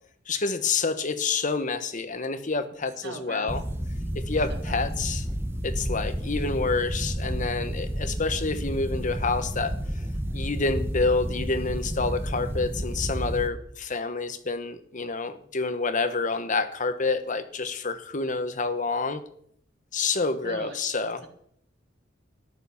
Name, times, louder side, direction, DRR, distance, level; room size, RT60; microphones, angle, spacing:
voice 1, 0.3-3.6 4.1-5.2 5.6-9.8 10.3-19.2 19.9-21.2, left 4 dB, 45° left, 1.1 m, -28 dB
voice 2, 3.0-3.6 4.5-4.8 20.4-20.8, right 3 dB, 65° right, 2.6 m, -40 dB
sound 1, 3.5-13.5, equal, 10° right, 1.0 m, -31 dB
13.5 x 11.0 x 7.1 m
head